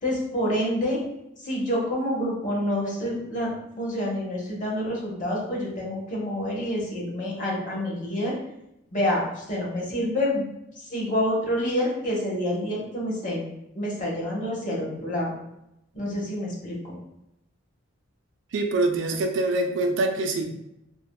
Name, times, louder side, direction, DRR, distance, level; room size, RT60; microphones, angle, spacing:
voice 1, 0.0-1.0 1.4-8.4 8.9-10.4 10.8-13.4 13.7-15.3 15.9-17.0, left 1 dB, 40° left, -4 dB, 0.8 m, -27 dB
voice 2, 18.5-20.4, right 2 dB, 70° right, 4 dB, 0.4 m, -24 dB
3.4 x 2.2 x 2.2 m, 0.83 s
head